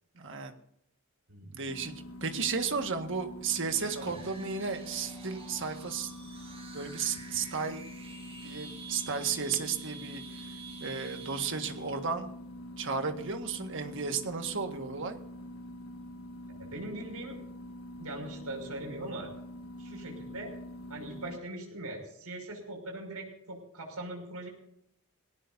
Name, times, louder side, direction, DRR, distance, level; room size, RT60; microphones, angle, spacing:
voice 1, 0.2-0.5 1.4-1.9 2.2-6.1 6.7-7.8 8.4-10.2 10.8-12.3 12.8-15.2, right 5 dB, 60° right, 6 dB, 1.8 m, -33 dB
voice 2, 1.3-1.6 3.9-4.2 16.5-17.4 18.0-19.3 19.8-20.5 20.9-24.5, right 1 dB, 85° right, 2 dB, 6.1 m, -41 dB
sound 1, 1.7-21.4, left 1 dB, 65° left, 1.4 m, -45 dB
sound 2, 3.7-12.0, right 5 dB, 25° right, 6.5 m, -49 dB
21.0 x 18.0 x 2.8 m, 0.74 s
head